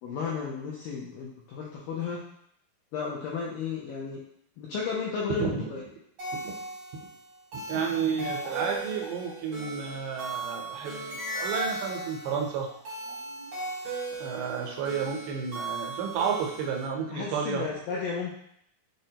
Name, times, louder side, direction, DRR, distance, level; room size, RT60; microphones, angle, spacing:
voice 1, 0.0-2.2 2.9-4.2 4.6-5.8 14.6-14.8 17.1-18.3, left 5 dB, 80° left, -4 dB, 1.9 m, -33 dB
voice 2, 5.3-5.7 6.4-6.5 7.7-12.7 14.2-17.7, right 6 dB, 90° right, 1 dB, 2.7 m, -31 dB
sound 1, 6.2-16.9, right 2 dB, 70° right, 1.2 m, -37 dB
sound 2, 8.3-13.7, left 1 dB, 60° left, 1.7 m, -52 dB
6.3 x 2.1 x 2.7 m, 0.70 s
omnidirectional pair, 4.5 m